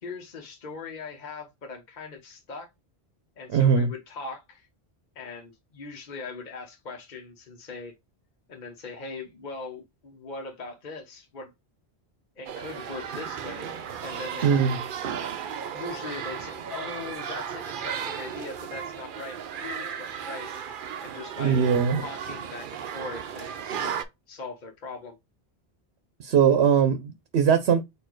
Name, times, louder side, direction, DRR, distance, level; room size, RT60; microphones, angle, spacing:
voice 1, 0.0-2.7 3.4-4.7 5.1-7.9 8.5-11.5 12.4-13.7 14.0-14.6 15.7-20.5 21.0-21.6 22.0-23.5 23.8-23.9 24.3-25.2, left 4 dB, 50° left, 1.0 m, -40 dB
voice 2, 3.5-3.9 14.4-14.8 21.4-22.0 26.2-27.8, right 7 dB, 85° right, 0.9 m, -21 dB
sound 1, 12.5-24.0, right 8 dB, 60° right, 0.7 m, -35 dB
4.4 x 2.7 x 4.5 m
omnidirectional pair, 1.1 m